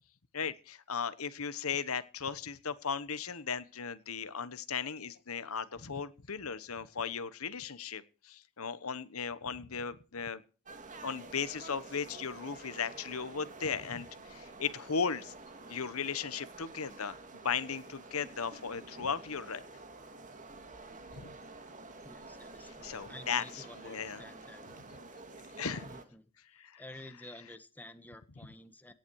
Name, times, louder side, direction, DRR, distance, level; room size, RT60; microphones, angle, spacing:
voice 1, 0.3-10.4 11.0-15.3 15.7-17.2 17.4-19.6 21.2-21.3 22.8-24.2 25.6-25.9 26.6-26.8, left 6 dB, 80° left, 15 dB, 1.1 m, -36 dB
sound 1, 10.6-26.0, right 3 dB, 35° right, 2.5 m, -50 dB
voice 2, 22.0-24.9 25.8-26.2 26.8-28.9, left 1 dB, 10° left, 10 dB, 1.4 m, -51 dB
17.5 x 10.5 x 4.7 m, 0.38 s
head